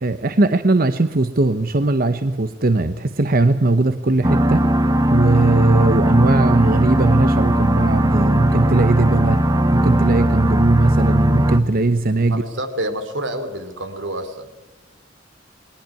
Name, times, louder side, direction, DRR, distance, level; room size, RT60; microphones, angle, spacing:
voice 1, 0.0-4.6 5.1-9.4 9.7-12.4, right 2 dB, 50° right, 11 dB, 0.9 m, -18 dB
sound 1, 4.2-11.6, right 1 dB, 20° right, 1.1 m, -18 dB
voice 2, 12.2-14.5, right 1 dB, 80° right, 9 dB, 3.1 m, -28 dB
21.0 x 20.0 x 9.7 m, 1.1 s
head